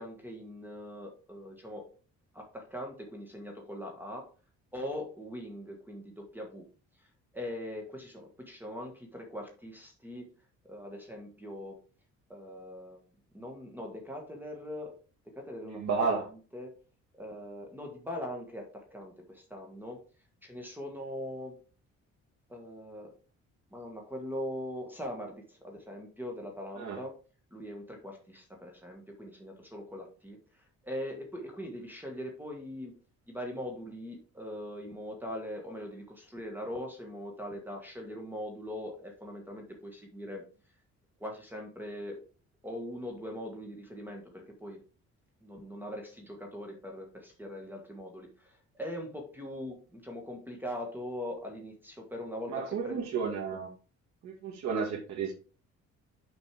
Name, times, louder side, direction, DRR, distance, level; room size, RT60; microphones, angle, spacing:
voice 1, 0.0-1.9 2.3-4.3 4.7-6.7 7.0-7.1 7.3-10.3 10.6-11.8 12.3-13.0 13.3-14.9 15.3-15.8 16.1-16.7 17.2-20.0 20.4-21.6 22.5-23.1 23.7-27.2 27.5-32.9 33.3-40.4 41.2-42.2 42.6-44.8 45.4-53.0, left 1 dB, 5° right, 1 dB, 1.6 m, -41 dB
voice 2, 15.8-16.2 26.8-27.0 52.5-53.7 54.2-55.3, right 5 dB, 70° right, -2 dB, 1.8 m, -32 dB
6.4 x 5.2 x 4.7 m, 0.36 s
cardioid pair, 140°, 29 cm